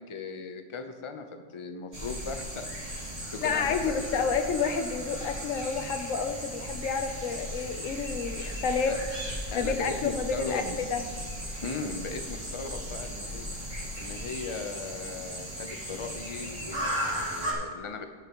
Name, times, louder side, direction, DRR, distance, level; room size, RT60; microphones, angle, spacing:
voice 1, 0.1-4.2 8.9-9.0 9.5-10.8 11.6-13.5 13.9-18.0, left 4 dB, 30° left, 6 dB, 0.6 m, -38 dB
sound 1, 1.9-17.5, equal, 35° right, 2.3 m, -36 dB
voice 2, 3.4-9.0 9.5-11.0, left 5 dB, 75° left, 7 dB, 1.1 m, -30 dB
19.0 x 6.8 x 3.0 m, 1.5 s
omnidirectional pair, 1.4 m